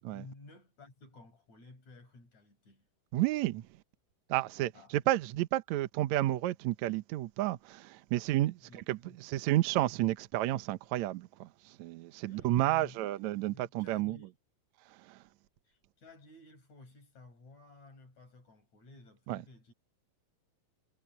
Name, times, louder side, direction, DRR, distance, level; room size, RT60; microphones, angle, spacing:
voice 1, 0.0-2.9 4.7-5.1 8.6-9.2 12.3-14.3 15.6-19.7, left 2 dB, 45° left, 7.0 m, -54 dB
voice 2, 3.1-3.7 4.3-14.2 14.9-15.2 19.3-19.4, right 15 dB, 75° right, 1.7 m, -31 dB
omnidirectional pair, 4.4 m